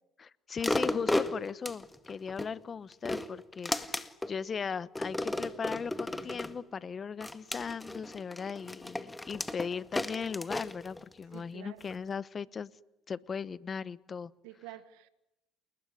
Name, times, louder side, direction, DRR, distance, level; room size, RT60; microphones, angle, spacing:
voice 1, 0.2-12.7 13.1-14.3, left 6 dB, 35° left, 19 dB, 1.0 m, -38 dB
sound 1, 0.6-2.5 2.9-4.3 5.0-6.6 7.2-11.4 11.9-12.0, left 1 dB, 10° left, 1.9 m, -34 dB
voice 2, 11.3-11.8 14.4-15.1, right 15 dB, 85° right, 14 dB, 1.5 m, -48 dB
29.0 x 20.5 x 9.8 m, 0.90 s
supercardioid pair, 90°, 0 cm